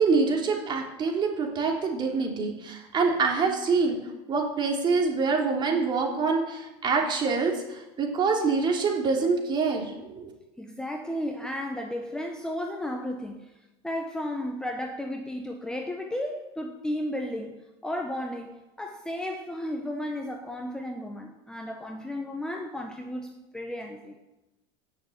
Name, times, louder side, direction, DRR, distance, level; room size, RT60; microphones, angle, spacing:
voice 1, 0.0-4.0 4.3-10.3, right 4 dB, 30° right, 1 dB, 3.3 m, -25 dB
voice 2, 10.6-13.5 13.8-17.5 17.8-24.2, left 1 dB, 5° left, 2 dB, 1.2 m, -34 dB
17.0 x 6.9 x 8.1 m, 1.0 s
supercardioid pair, 135°, 15 cm